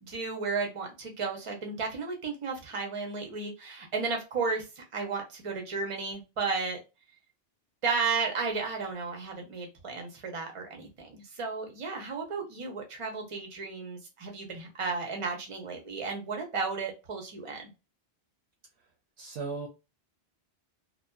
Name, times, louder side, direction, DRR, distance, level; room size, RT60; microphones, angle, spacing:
voice 1, 0.0-6.8 7.8-17.7, right 4 dB, 35° right, 2 dB, 0.6 m, -33 dB
voice 2, 19.2-19.7, right 4 dB, 75° right, 3 dB, 0.8 m, -36 dB
2.6 x 2.1 x 2.2 m, 0.28 s
omnidirectional pair, 1.1 m